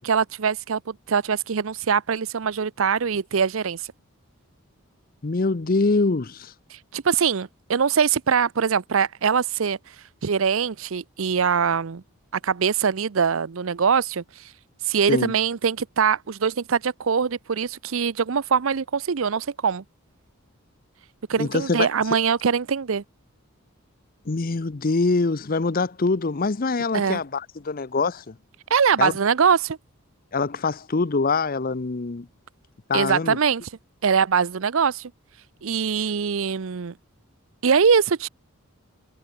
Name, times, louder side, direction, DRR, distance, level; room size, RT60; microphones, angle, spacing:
voice 1, 0.0-3.8 6.7-9.8 10.2-12.0 12.4-14.2 14.9-19.8 21.3-23.0 26.9-27.2 28.7-29.8 32.9-33.6 34.0-35.1 35.6-36.9 37.6-38.3, right 6 dB, 65° right, 0.6 m, -22 dB
voice 2, 5.2-6.5 15.1-15.3 21.4-21.9 24.3-28.3 29.0-29.1 30.3-32.3 32.9-33.4, left 3 dB, 40° left, 0.7 m, -24 dB
head